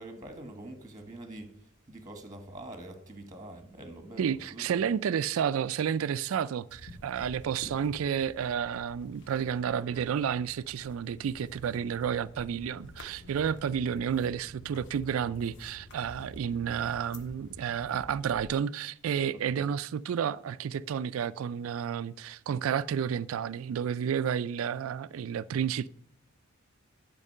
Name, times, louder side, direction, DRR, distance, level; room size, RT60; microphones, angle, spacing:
voice 1, 0.0-1.5 1.9-4.8, right 1 dB, 20° right, 1.3 m, -45 dB
voice 2, 4.2-25.9, right 8 dB, 75° right, 0.3 m, -31 dB
sound 1, 6.7-18.5, equal, 60° left, 1.5 m, -50 dB
11.0 x 5.3 x 5.4 m
head